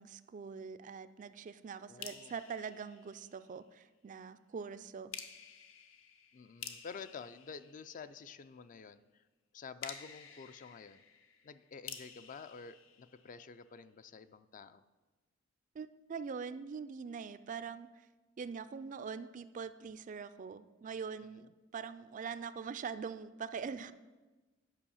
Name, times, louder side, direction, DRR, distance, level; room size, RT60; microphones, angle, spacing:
voice 1, 0.0-5.1 15.7-18.1 18.4-21.5 21.7-23.9, right 6 dB, 40° right, 13 dB, 0.3 m, -43 dB
voice 2, 1.9-2.3 6.3-9.2 9.5-11.0 11.4-14.8 21.3-21.5, left 5 dB, 40° left, 12 dB, 0.4 m, -50 dB
sound 1, 2.0-3.7 5.1-8.4 9.8-13.7, left 7 dB, 75° left, 0.9 m, -51 dB
9.8 x 5.4 x 7.0 m, 1.2 s
head